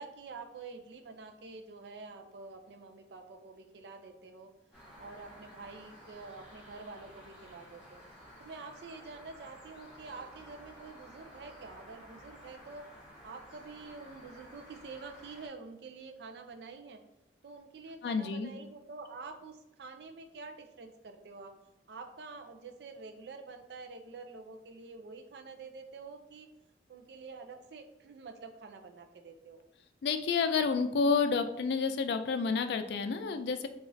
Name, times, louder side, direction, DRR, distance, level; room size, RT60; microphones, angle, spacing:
voice 1, 0.0-4.5 5.0-8.0 8.4-12.8 13.2-17.0 17.4-21.5 21.9-26.5 26.9-29.6, right 4 dB, 65° right, 6 dB, 0.4 m, -47 dB
sound 1, 4.7-15.5, equal, 5° right, 1.3 m, -53 dB
voice 2, 18.0-18.5 30.0-33.7, left 5 dB, 65° left, 8 dB, 0.3 m, -29 dB
4.9 x 2.4 x 2.6 m, 0.88 s
head